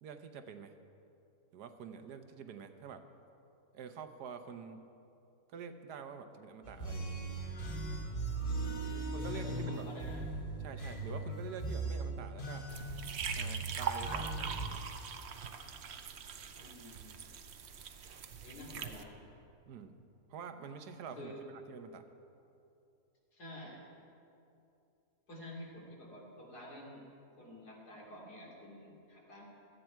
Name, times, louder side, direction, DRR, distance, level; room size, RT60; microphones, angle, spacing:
voice 1, 0.0-0.8 1.5-3.1 3.7-4.9 5.5-7.3 9.1-9.9 10.6-12.7 13.3-14.9 19.7-20.0 20.3-22.1, right 6 dB, 85° right, 8 dB, 1.4 m, -47 dB
sound 1, 6.6-14.7, right 2 dB, 35° left, 1.6 m, -39 dB
voice 2, 8.5-10.2 16.5-17.2 18.4-19.1 21.1-21.4 23.3-23.8 25.3-27.1 27.4-29.4, left 1 dB, 80° left, -2 dB, 3.3 m, -49 dB
sound 2, 12.7-19.0, right 6 dB, 55° right, 0.8 m, -42 dB
17.0 x 13.0 x 4.6 m, 2.7 s
omnidirectional pair, 1.7 m